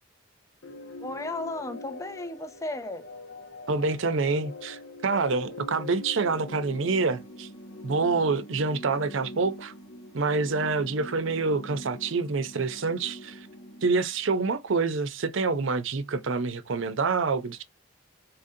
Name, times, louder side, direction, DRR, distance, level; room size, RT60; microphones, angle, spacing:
sound 1, 0.6-14.3, left 1 dB, 85° left, 0.7 m, -43 dB
voice 1, 1.0-3.1, left 2 dB, 15° left, 0.4 m, -35 dB
voice 2, 3.7-7.5 7.8-9.7 10.1-13.5 13.8-17.6, right 4 dB, 75° right, 0.6 m, -27 dB
4.1 x 2.6 x 2.7 m
head